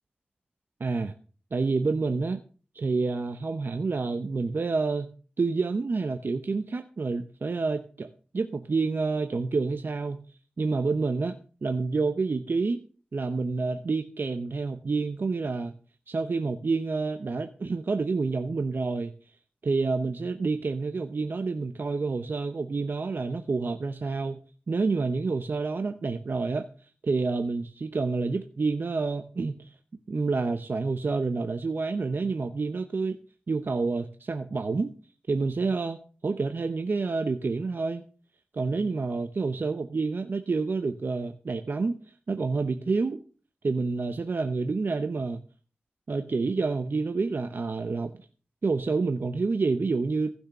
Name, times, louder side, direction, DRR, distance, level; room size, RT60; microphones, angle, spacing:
voice 1, 0.8-1.1 1.5-2.4 2.7-5.1 5.4-12.8 13.1-15.7 16.1-19.1 19.6-24.4 24.7-29.7 30.1-33.2 33.5-34.9 35.3-38.0 38.5-43.2 43.6-45.4 46.1-48.1 48.6-50.3, right 4 dB, 70° right, 8 dB, 0.9 m, -28 dB
15.5 x 6.5 x 6.6 m, 0.38 s
wide cardioid pair, 70°, 4 cm